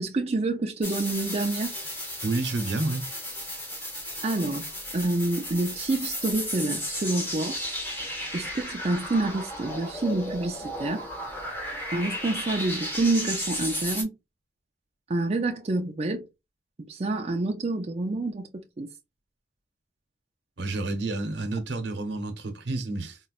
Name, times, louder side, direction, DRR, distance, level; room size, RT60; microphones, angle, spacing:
voice 1, 0.0-1.7 4.2-4.6 4.9-7.6 8.3-11.1 11.9-14.1 15.1-16.3 16.9-18.9, right 2 dB, 35° right, 0.5 m, -28 dB
sound 1, 0.8-14.0, equal, 10° left, 1.0 m, -34 dB
voice 2, 2.2-3.0 20.6-23.2, right 2 dB, 75° right, 0.9 m, -29 dB
4.0 x 2.2 x 2.4 m
head